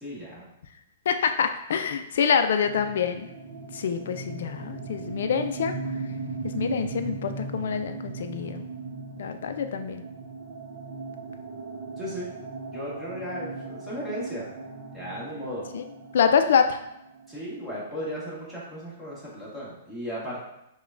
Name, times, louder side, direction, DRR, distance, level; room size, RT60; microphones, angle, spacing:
voice 1, 0.0-0.5 12.0-12.3 12.7-14.5 14.9-15.7 17.3-20.4, equal, ahead, -9 dB, 1.4 m, -35 dB
voice 2, 1.1-3.3 3.7-5.7 6.4-8.7 9.2-10.0 15.7-15.8 16.1-16.8, left 7 dB, 70° left, 8 dB, 0.3 m, -25 dB
sound 1, 2.3-17.9, right 4 dB, 55° right, 0.5 m, -38 dB
4.9 x 2.2 x 2.5 m, 0.82 s
hypercardioid pair, 135°, 0 cm